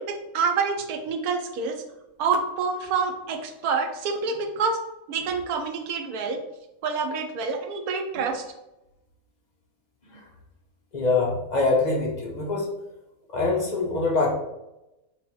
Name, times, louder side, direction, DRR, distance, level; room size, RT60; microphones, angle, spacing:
voice 1, 0.0-1.8 2.2-4.8 5.1-6.4 6.8-8.4, right 5 dB, 80° right, 5 dB, 1.1 m, -27 dB
voice 2, 10.9-12.7 13.3-14.3, left 3 dB, 50° left, -1 dB, 0.5 m, -24 dB
5.9 x 2.4 x 3.0 m, 0.94 s
omnidirectional pair, 1.6 m